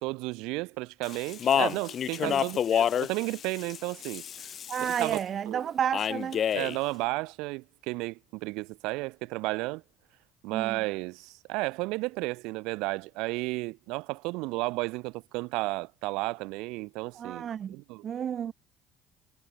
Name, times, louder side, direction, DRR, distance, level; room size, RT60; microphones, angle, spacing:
voice 1, 0.0-4.2 4.8-5.2 5.5-5.6 6.5-9.8 10.4-18.0, right 24 dB, 75° right, 1.9 m, -33 dB
Speech, 1.0-5.2 5.9-6.8, left 9 dB, 50° left, 1.5 m, -29 dB
voice 2, 4.7-6.4 10.5-10.8 17.2-17.8 18.0-18.5, right 8 dB, 50° right, 0.3 m, -31 dB
hypercardioid pair, 60°, 0 cm